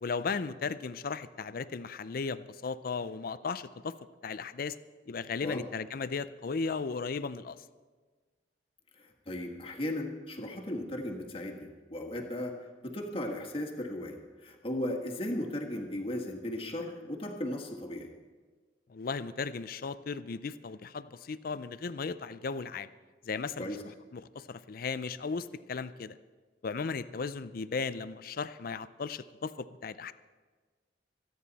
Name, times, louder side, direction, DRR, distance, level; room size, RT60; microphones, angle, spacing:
voice 1, 0.0-3.9 4.2-4.8 5.1-7.6 18.9-22.9 23.2-23.7 24.1-26.2 26.6-30.1, left 4 dB, 55° left, 14 dB, 0.5 m, -36 dB
voice 2, 9.0-18.1 23.6-23.8, left 1 dB, 30° left, 1 dB, 1.7 m, -36 dB
25.0 x 9.6 x 4.1 m, 1.4 s
head